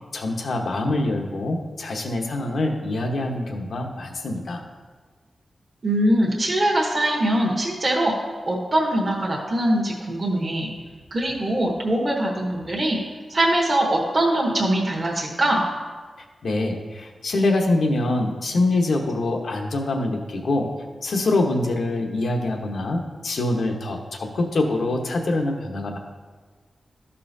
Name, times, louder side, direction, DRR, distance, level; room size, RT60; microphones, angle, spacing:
voice 1, 0.1-4.6 16.4-20.7 21.0-26.0, left 2 dB, 65° left, 2 dB, 1.0 m, -24 dB
voice 2, 5.8-8.1 8.5-10.7 11.1-13.0 13.3-15.6, right 1 dB, 30° right, -3 dB, 1.0 m, -22 dB
13.0 x 5.6 x 2.7 m, 1.5 s
wide cardioid pair, 150°, 0 cm